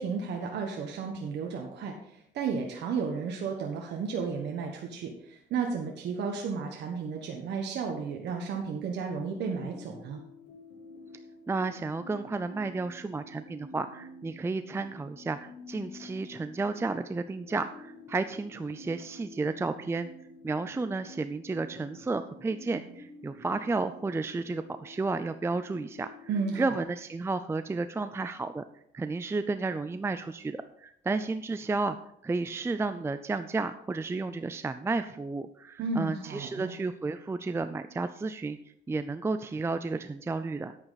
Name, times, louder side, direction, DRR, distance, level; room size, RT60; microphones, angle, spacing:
voice 1, 0.0-10.2 26.3-26.8 35.8-36.7, right 5 dB, 75° right, 1 dB, 1.3 m, -33 dB
sound 1, 9.3-26.8, left 2 dB, 85° left, 2.6 m, -49 dB
voice 2, 11.5-20.1 20.4-28.6 28.9-32.0 32.2-38.6 38.9-40.8, right 3 dB, 15° right, 10 dB, 0.4 m, -32 dB
9.8 x 8.6 x 4.0 m, 0.71 s
cardioid pair, 115°, 18 cm